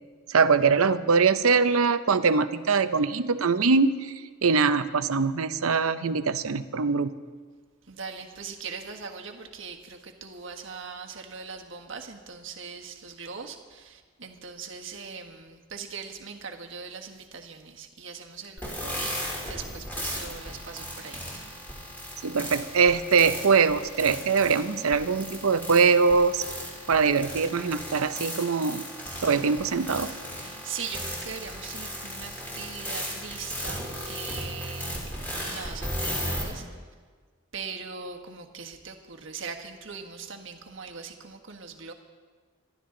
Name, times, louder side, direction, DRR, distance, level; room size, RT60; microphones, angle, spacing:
voice 1, 0.3-4.1 4.4-7.1 22.2-26.4 26.9-28.8 29.2-30.1, right 5 dB, 80° right, 12 dB, 0.7 m, -22 dB
voice 2, 7.9-21.6 30.4-36.6 37.5-41.9, right 5 dB, 60° right, 3 dB, 1.4 m, -40 dB
sound 1, 18.6-36.4, equal, 10° left, 3.3 m, -36 dB
26.0 x 12.0 x 3.9 m, 1.5 s
head